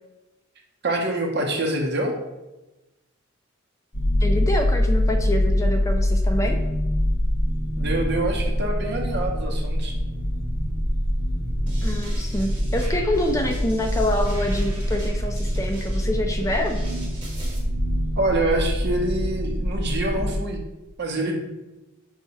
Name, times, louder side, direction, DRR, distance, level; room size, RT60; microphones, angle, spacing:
voice 1, 0.8-2.1 7.8-9.9 18.2-20.6 21.0-21.4, right 2 dB, 55° right, 1 dB, 0.8 m, -25 dB
sound 1, 3.9-20.3, equal, 35° left, 0.7 m, -24 dB
voice 2, 4.2-6.6 11.8-16.8, left 1 dB, 15° left, 4 dB, 0.3 m, -26 dB
sound 2, 11.7-17.6, equal, 25° right, 1.3 m, -40 dB
5.6 x 2.3 x 4.0 m, 1.0 s
head